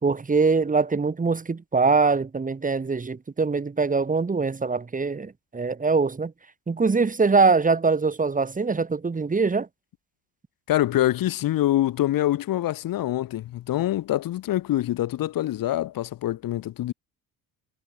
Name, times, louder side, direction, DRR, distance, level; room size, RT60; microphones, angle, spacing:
voice 1, 0.0-6.3 6.7-9.7, right 4 dB, 20° right, 3.7 m, -23 dB
voice 2, 10.7-16.9, left 14 dB, 65° left, 3.0 m, -25 dB
cardioid pair, 120°, 36 cm